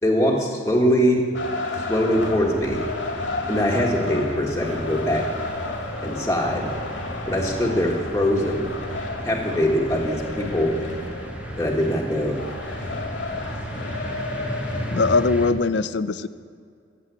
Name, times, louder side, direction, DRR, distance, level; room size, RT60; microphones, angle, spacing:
voice 1, 0.0-1.2 1.9-2.8 3.5-5.2 6.0-6.7 7.3-8.6 9.2-10.7 11.6-12.4, equal, 15° left, -2 dB, 1.6 m, -22 dB
sound 1, 1.3-15.4, left 2 dB, 85° left, 2.3 m, -32 dB
sound 2, 2.1-15.5, right 1 dB, 5° right, 0.9 m, -35 dB
voice 2, 14.9-16.3, left 4 dB, 65° left, 15 dB, 0.5 m, -21 dB
15.5 x 7.7 x 8.3 m, 2.2 s
head